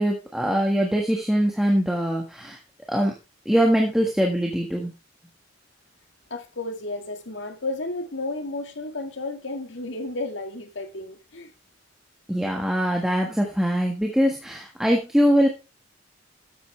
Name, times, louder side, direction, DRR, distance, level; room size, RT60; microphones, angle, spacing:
voice 1, 0.0-2.6 2.9-3.2 3.4-4.9 12.3-15.5, equal, ahead, 1.6 m, -22 dB
voice 2, 6.3-11.5, left 2 dB, 70° left, 2.0 m, -32 dB
13.0 x 8.5 x 3.3 m
head